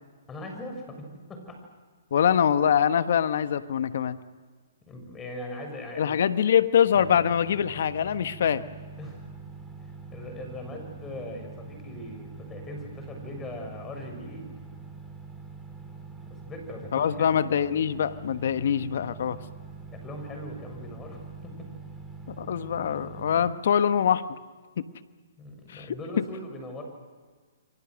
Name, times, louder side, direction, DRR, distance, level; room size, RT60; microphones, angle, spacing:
voice 1, 0.3-1.6 4.9-6.2 9.0-9.2 9.8-14.5 16.3-17.4 19.9-21.7 25.4-26.8, left 1 dB, 15° left, 4 dB, 6.7 m, -40 dB
voice 2, 2.1-4.2 6.0-8.6 16.9-19.4 22.3-24.2 24.8-24.9 25.7-25.9, left 8 dB, 60° left, 12 dB, 1.3 m, -24 dB
sound 1, 6.9-23.5, right 4 dB, 5° right, 3.9 m, -44 dB
29.5 x 23.5 x 6.4 m, 1.5 s
hypercardioid pair, 135°, 0 cm